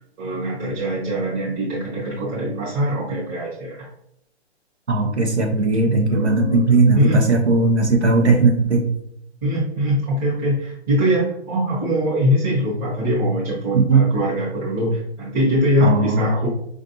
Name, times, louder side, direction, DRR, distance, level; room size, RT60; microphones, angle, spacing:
voice 1, 0.2-3.9 5.8-6.6 6.9-7.2 9.4-16.5, equal, 20° right, -9 dB, 1.0 m, -22 dB
voice 2, 4.9-8.8 13.7-14.0 15.8-16.2, right 3 dB, 90° right, 2 dB, 1.2 m, -17 dB
5.2 x 2.5 x 2.7 m, 0.73 s
hypercardioid pair, 145°, 33 cm